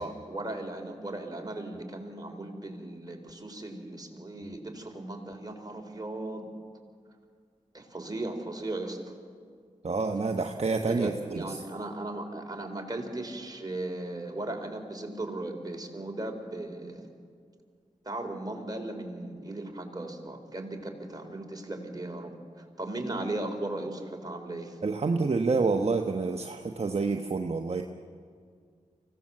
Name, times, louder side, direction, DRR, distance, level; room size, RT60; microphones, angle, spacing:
voice 1, 0.0-6.5 7.7-9.0 10.8-17.1 18.0-24.8, right 2 dB, 30° right, 2 dB, 4.1 m, -37 dB
voice 2, 9.8-11.6 24.8-27.8, right 4 dB, 50° right, 4 dB, 1.1 m, -28 dB
24.5 x 17.0 x 7.6 m, 2.1 s
cardioid pair, 45°, 14 cm